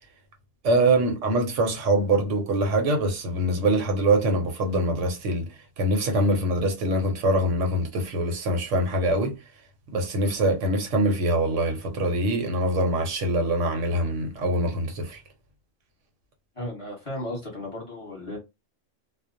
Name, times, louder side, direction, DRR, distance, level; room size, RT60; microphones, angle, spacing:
voice 1, 0.6-9.4 9.9-15.2, right 1 dB, 75° right, 1.1 m, -24 dB
voice 2, 16.6-18.4, left 1 dB, 25° left, 1.0 m, -35 dB
2.4 x 2.0 x 2.6 m
omnidirectional pair, 1.3 m